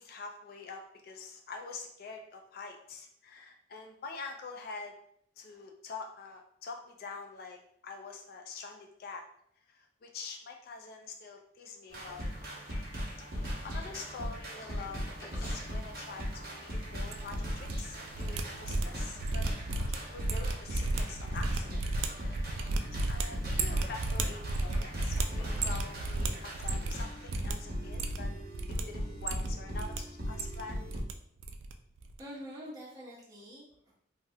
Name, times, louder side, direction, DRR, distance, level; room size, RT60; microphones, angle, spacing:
voice 1, 0.0-5.0 5.4-9.2 9.7-12.3 13.6-19.5 19.9-21.8 22.1-22.6 23.1-28.3 28.7-30.8, left 4 dB, 50° left, 3 dB, 0.3 m, -45 dB
sound 1, 11.9-31.0, equal, 50° right, 0.9 m, -38 dB
sound 2, 12.4-26.0, left 1 dB, 70° left, 0.9 m, -55 dB
sound 3, 16.9-17.8 18.1-27.0 27.3-27.5 27.8-28.8 29.1-30.0 30.2-31.1 31.4-31.7 32.0-32.2, right 3 dB, 80° right, 0.3 m, -34 dB
voice 2, 32.2-34.0, equal, 20° right, -6 dB, 0.9 m, -46 dB
3.3 x 2.2 x 2.7 m, 0.68 s
head